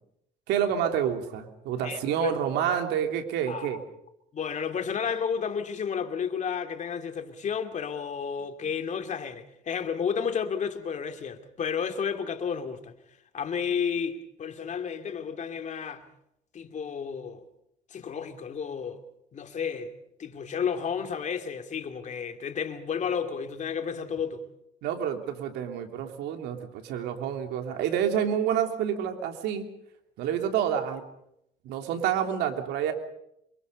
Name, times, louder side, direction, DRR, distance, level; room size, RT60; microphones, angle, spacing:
voice 1, 0.5-3.8 24.8-29.7 30.2-31.1 31.6-32.9, right 9 dB, 85° right, 3.2 m, -28 dB
voice 2, 1.8-2.3 3.5-3.8 4.3-13.0 13.3-16.1 16.5-17.4 17.9-19.0 19.3-19.9 20.2-24.5, left 7 dB, 45° left, 2.7 m, -32 dB
27.5 x 24.0 x 5.4 m
cardioid pair, 110°, 17 cm